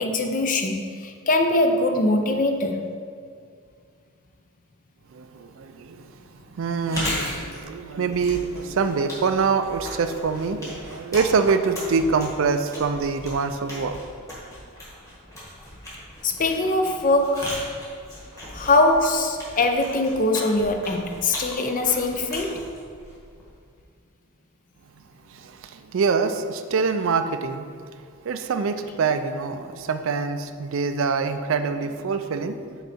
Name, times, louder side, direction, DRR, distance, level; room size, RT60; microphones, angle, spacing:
voice 1, 0.0-2.9 16.2-17.6 18.5-22.7, left 2 dB, 35° left, 5 dB, 0.5 m, -22 dB
voice 2, 5.1-6.1 6.5-14.0 25.3-27.7 28.2-32.8, right 5 dB, 60° right, 9 dB, 0.4 m, -25 dB
Chewing mastication, 6.7-23.6, equal, 15° left, 1.6 m, -37 dB
8.2 x 4.0 x 4.3 m, 2.2 s
head